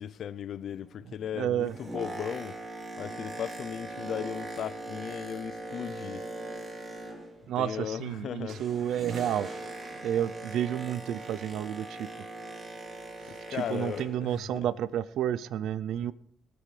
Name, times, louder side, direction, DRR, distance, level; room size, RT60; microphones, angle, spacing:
voice 1, 0.0-2.6 3.0-6.3 7.6-8.6 13.3-14.7 16.0-16.1, left 9 dB, 65° left, 0.5 m, -37 dB
voice 2, 1.3-1.7 7.5-9.5 10.0-12.1 13.5-16.1, right 10 dB, 80° right, 0.4 m, -30 dB
Boat Water vehicle, 1.6-7.5 7.8-14.3 14.9-15.0, right 2 dB, 35° right, 3.5 m, -41 dB
sound 1, 8.5-10.6 12.0-12.2, right 3 dB, 55° right, 3.3 m, -51 dB
19.5 x 13.0 x 3.3 m
cardioid pair, 90°, 0 cm